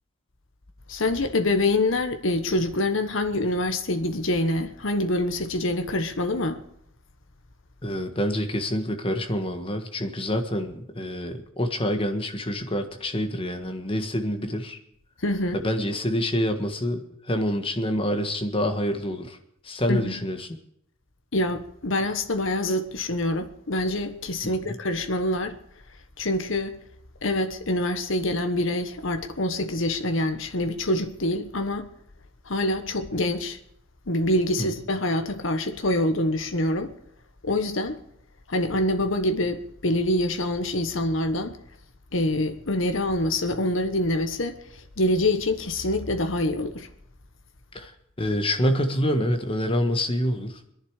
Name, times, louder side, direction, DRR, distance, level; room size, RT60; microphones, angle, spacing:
voice 1, 0.9-6.6 15.2-15.6 19.9-20.2 21.3-25.6 26.2-26.8 27.2-31.9 32.4-33.6 34.1-36.9 37.4-38.0 38.5-41.5 42.1-46.9, left 1 dB, 65° left, 1.2 m, -25 dB
voice 2, 7.8-14.8 15.5-19.4 19.6-20.5 24.4-24.7 34.6-34.7 47.7-50.7, equal, 25° left, 1.6 m, -27 dB
22.5 x 11.0 x 4.9 m
head